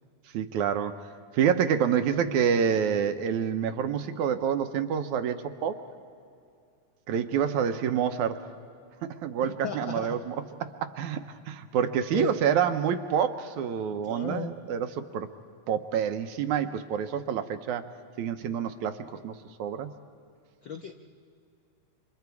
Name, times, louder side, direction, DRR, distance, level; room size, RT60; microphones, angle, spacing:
voice 1, 0.3-1.1 1.3-5.8 7.1-8.4 9.0-15.3 15.7-17.8 18.2-19.3 19.6-19.9, right 8 dB, 75° right, 8 dB, 2.2 m, -27 dB
voice 2, 9.4-10.2 12.1-12.3 14.0-14.5 20.6-20.9, left 6 dB, 75° left, 4 dB, 1.1 m, -34 dB
30.0 x 26.0 x 4.7 m, 2.4 s
omnidirectional pair, 3.6 m